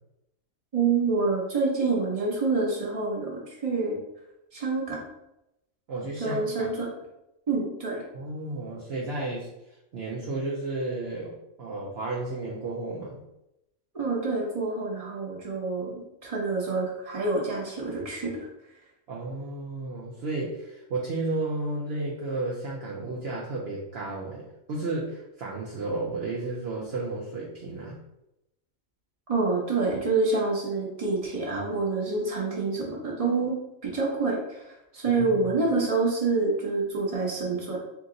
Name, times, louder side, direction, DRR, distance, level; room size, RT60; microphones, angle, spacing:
voice 1, 0.7-4.0 4.5-5.0 6.2-6.9 7.5-8.0 13.9-18.3 29.3-33.5 33.8-34.6 34.9-37.8, right 3 dB, 30° right, -3 dB, 1.0 m, -27 dB
voice 2, 5.9-6.7 8.1-9.5 9.9-13.2 19.1-28.0 35.1-35.5, right 2 dB, 55° right, -3 dB, 0.8 m, -33 dB
3.9 x 2.8 x 3.8 m, 0.88 s
omnidirectional pair, 1.4 m